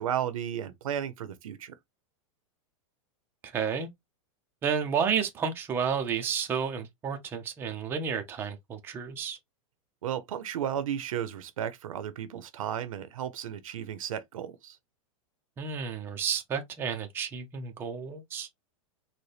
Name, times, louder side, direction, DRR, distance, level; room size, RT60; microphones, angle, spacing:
voice 1, 0.0-1.8 10.0-14.8, right 9 dB, 90° right, 0.7 m, -34 dB
voice 2, 3.4-3.9 4.6-9.4 15.6-18.5, right 7 dB, 15° right, 0.5 m, -31 dB
4.1 x 2.1 x 3.2 m
supercardioid pair, 165°, 17 cm